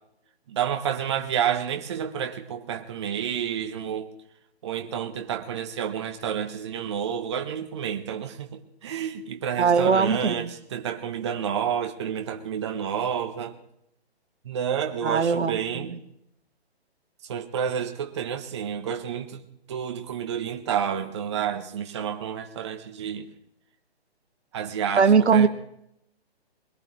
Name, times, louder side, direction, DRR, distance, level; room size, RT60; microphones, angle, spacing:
voice 1, 0.5-4.1 4.6-13.5 14.4-16.0 17.3-23.3 24.5-25.5, right 8 dB, 25° right, 0.9 m, -30 dB
voice 2, 9.6-10.5 15.0-15.9 25.0-25.5, right 5 dB, 90° right, 1.4 m, -20 dB
22.0 x 21.0 x 3.1 m
hypercardioid pair, 165°, 33 cm